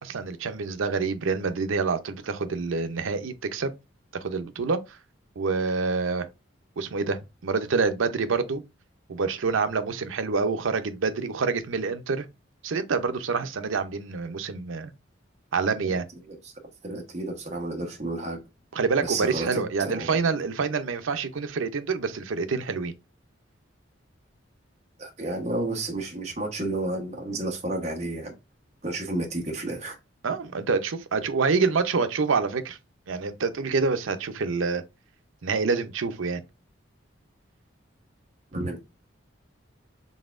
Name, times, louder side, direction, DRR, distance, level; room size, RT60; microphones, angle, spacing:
voice 1, 0.0-3.7 4.2-4.8 5.4-6.3 6.8-8.6 9.1-12.3 12.6-14.9 15.5-16.0 18.7-22.9 30.2-32.8 33.1-34.8 35.4-36.4 38.5-38.7, right 4 dB, 90° right, 0.6 m, -27 dB
voice 2, 16.8-18.4 19.0-20.2 25.0-28.4 28.8-30.0 38.5-38.8, right 2 dB, 35° right, 1.0 m, -31 dB
4.0 x 3.5 x 2.4 m
head